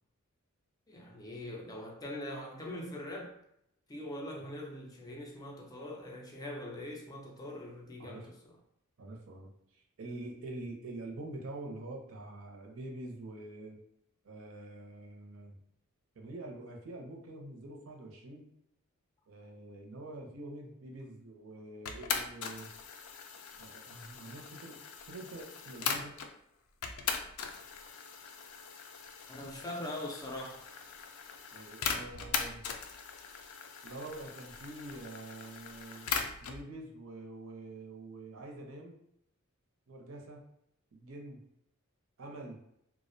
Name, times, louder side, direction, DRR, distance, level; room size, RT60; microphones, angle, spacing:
voice 1, 0.9-3.3 3.9-8.6 29.3-30.7, left 1 dB, 20° left, 0.3 m, -42 dB
voice 2, 9.0-13.8 14.2-15.6 16.2-18.5 19.3-22.7 23.6-24.8 25.1-26.1 31.5-32.6 33.8-36.1 36.4-39.0 39.9-40.4 40.9-41.4 42.2-42.6, right 2 dB, 70° right, 0.5 m, -46 dB
sound 1, 21.9-26.3 26.8-36.6, left 6 dB, 90° left, 0.3 m, -40 dB
2.3 x 2.0 x 2.6 m
head